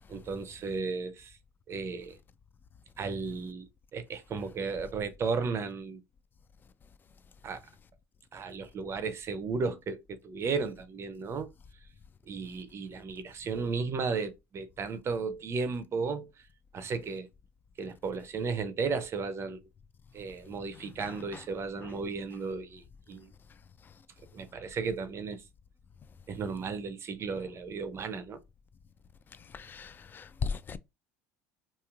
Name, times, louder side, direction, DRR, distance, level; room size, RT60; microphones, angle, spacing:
voice 1, 0.1-1.4 1.7-2.2 3.0-3.7 3.9-6.0 7.4-7.6 8.3-11.5 12.3-16.3 16.7-17.3 17.8-19.6 20.1-23.3 24.3-25.4 26.3-28.4, right 4 dB, 40° right, 0.5 m, -34 dB
voice 2, 29.5-30.8, left 6 dB, 25° left, 0.3 m, -36 dB
3.0 x 2.7 x 2.4 m
supercardioid pair, 95°, 7 cm